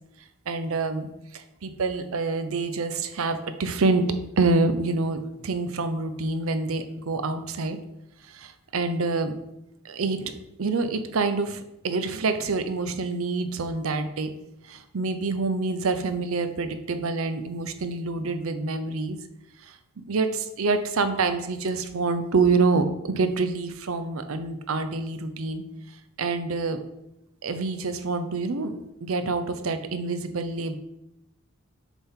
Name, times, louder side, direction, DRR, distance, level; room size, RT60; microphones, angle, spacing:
voice 1, 0.5-4.0 4.4-7.8 8.2-9.4 9.8-10.3 10.6-14.3 14.6-19.2 19.6-25.6 26.2-26.8 27.4-30.8, right 3 dB, 70° right, 9 dB, 0.6 m, -27 dB
6.9 x 3.7 x 4.5 m, 0.87 s
head